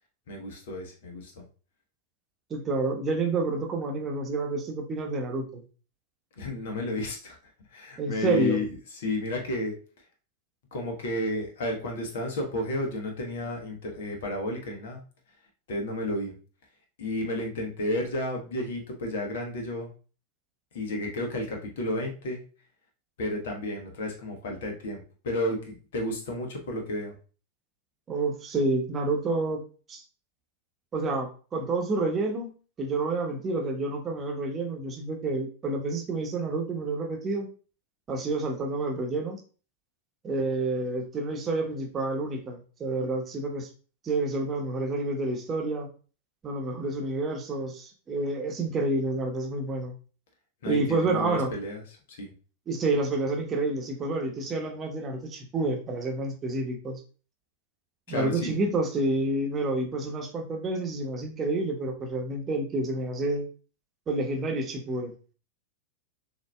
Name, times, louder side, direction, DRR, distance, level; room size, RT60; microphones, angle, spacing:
voice 1, 0.3-1.4 6.4-7.4 7.7-8.7 8.9-9.7 10.7-15.0 15.7-16.3 17.0-19.9 20.7-22.4 23.2-27.1 50.6-51.8 52.1-52.3 58.1-58.6, left 1 dB, 55° left, 2 dB, 1.2 m, -32 dB
voice 2, 2.5-5.6 8.0-8.6 28.1-29.6 29.9-30.0 30.9-32.5 32.8-37.5 38.1-39.4 40.2-43.7 44.0-45.9 46.4-49.9 50.6-51.5 52.7-57.0 58.1-63.5 64.1-65.1, right 2 dB, 25° right, 2 dB, 1.0 m, -29 dB
6.3 x 2.9 x 2.3 m, 0.38 s
figure-of-eight pair, 90°, 0 cm